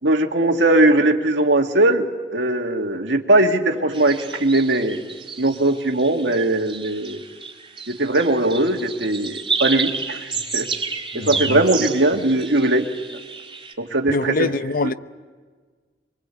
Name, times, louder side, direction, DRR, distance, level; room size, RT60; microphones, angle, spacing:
voice 1, 0.0-5.0 5.4-7.2 7.9-10.7 11.1-12.9 13.8-14.5 14.8-14.9, right 2 dB, 80° right, 2.2 m, -20 dB
sound 1, 3.9-13.7, right 4 dB, 30° right, 3.6 m, -31 dB
voice 2, 11.1-11.6 14.1-14.9, left 3 dB, 50° left, 0.7 m, -24 dB
24.0 x 24.0 x 8.3 m
head